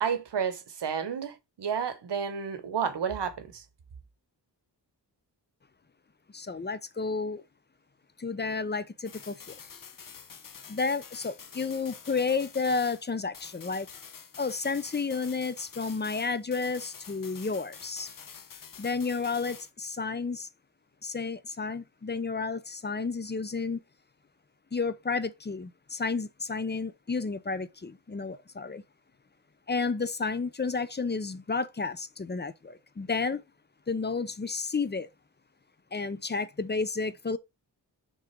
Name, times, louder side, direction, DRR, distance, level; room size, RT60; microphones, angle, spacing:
voice 1, 0.0-3.6, right 7 dB, 80° right, 1.2 m, -31 dB
voice 2, 6.3-7.4 8.2-9.6 10.7-13.9 14.4-18.1 18.8-20.5 21.0-23.8 24.7-28.8 29.7-33.4 33.9-35.1 35.9-37.4, left 4 dB, 25° left, 0.6 m, -31 dB
sound 1, 9.0-13.1 13.3-19.7, left 6 dB, 50° left, 0.9 m, -47 dB
6.3 x 3.7 x 4.6 m
wide cardioid pair, 140°, 41 cm